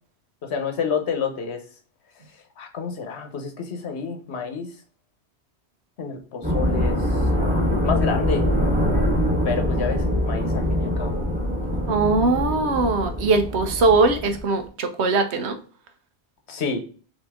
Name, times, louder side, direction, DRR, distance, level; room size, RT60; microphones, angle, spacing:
voice 1, 0.4-1.6 2.6-4.7 6.0-7.2 7.8-8.5 9.4-11.2 16.5-16.8, left 6 dB, 80° left, 5 dB, 1.2 m, -29 dB
sound 1, 6.4-14.7, equal, 10° right, 1.1 m, -23 dB
voice 2, 11.9-15.6, right 3 dB, 85° right, 7 dB, 1.1 m, -21 dB
5.3 x 2.9 x 3.5 m, 0.40 s
omnidirectional pair, 1.1 m